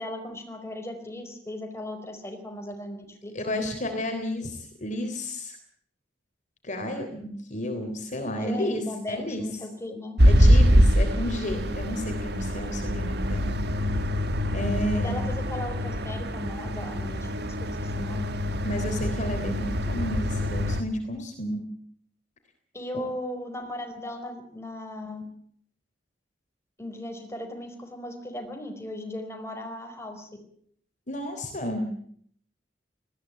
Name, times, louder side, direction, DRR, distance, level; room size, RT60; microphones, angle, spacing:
voice 1, 0.0-3.6 8.4-10.2 14.9-18.3 22.7-25.2 26.8-30.3, left 1 dB, 15° left, 4 dB, 4.8 m, -37 dB
voice 2, 3.4-5.6 6.6-9.5 10.2-13.5 14.5-15.3 18.6-21.6 22.9-23.0 31.1-31.9, equal, 45° left, 6 dB, 3.5 m, -31 dB
sound 1, 10.2-20.8, equal, 60° right, 1.9 m, -24 dB
20.0 x 16.0 x 9.2 m, 0.63 s
head